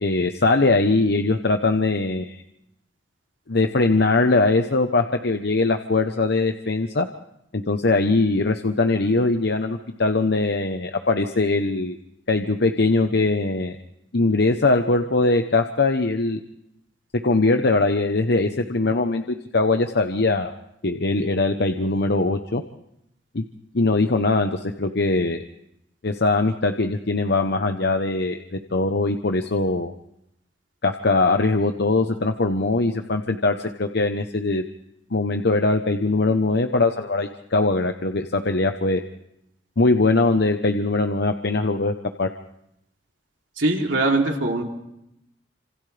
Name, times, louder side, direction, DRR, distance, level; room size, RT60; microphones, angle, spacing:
voice 1, 0.0-2.4 3.5-7.1 7.5-12.0 12.3-13.8 14.1-16.4 17.2-20.5 20.8-22.6 23.3-23.4 23.7-25.4 26.0-29.9 30.8-34.7 35.1-39.0 39.8-42.3, left 3 dB, 60° left, 6 dB, 1.0 m, -21 dB
voice 2, 43.6-44.6, right 2 dB, 80° right, 1 dB, 3.2 m, -21 dB
29.0 x 27.0 x 3.4 m, 0.81 s
head